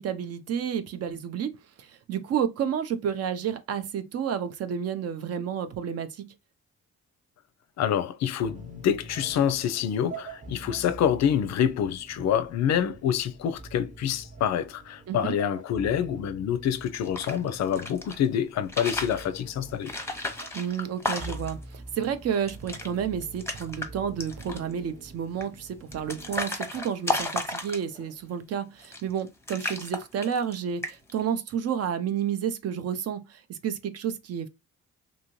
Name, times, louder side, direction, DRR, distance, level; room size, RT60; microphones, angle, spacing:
voice 1, 0.0-1.5 1.8-6.3 15.1-15.4 20.5-34.5, right 8 dB, 55° right, 0.5 m, -31 dB
voice 2, 7.8-19.9, left 9 dB, 60° left, 0.5 m, -27 dB
sound 1, 8.4-26.4, right 2 dB, 25° right, 0.8 m, -45 dB
sound 2, 16.9-18.2 18.6-19.3 19.8-21.6 22.0-22.1 22.4-22.9 23.2-23.9 24.2-24.7 25.4-28.1 28.8-29.2 29.5-30.6 30.8-31.2, left 2 dB, 10° left, 0.7 m, -33 dB
2.7 x 2.6 x 3.0 m
cardioid pair, 90°, 30 cm